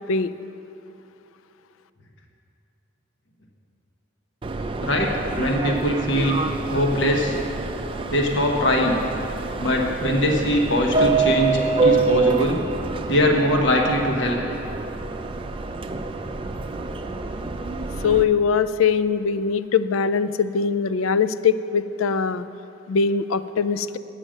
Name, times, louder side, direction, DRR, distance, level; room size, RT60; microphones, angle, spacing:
Subway metro underground, 4.4-18.2, right 4 dB, 25° right, 0.4 m, -26 dB
voice 1, 4.8-6.4 6.7-7.4 8.1-9.0 9.6-12.6 13.0-14.4, equal, 65° left, 1 dB, 1.2 m, -21 dB
voice 2, 18.0-22.4 22.9-24.0, left 6 dB, 85° left, 14 dB, 0.4 m, -21 dB
9.0 x 8.9 x 6.4 m, 2.8 s
head